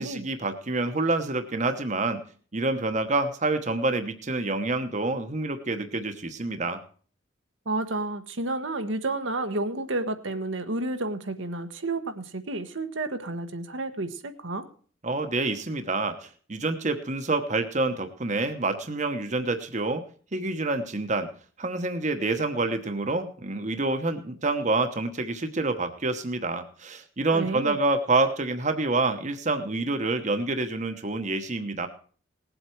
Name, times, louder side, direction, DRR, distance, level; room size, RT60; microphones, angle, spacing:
voice 1, 0.0-2.2 2.5-6.8 15.0-20.0 20.3-21.3 21.6-31.9, right 2 dB, 40° right, 8 dB, 1.0 m, -27 dB
voice 2, 7.6-14.7 27.3-27.8, right 2 dB, 75° right, 7 dB, 1.3 m, -31 dB
19.0 x 8.0 x 4.5 m, 0.42 s
head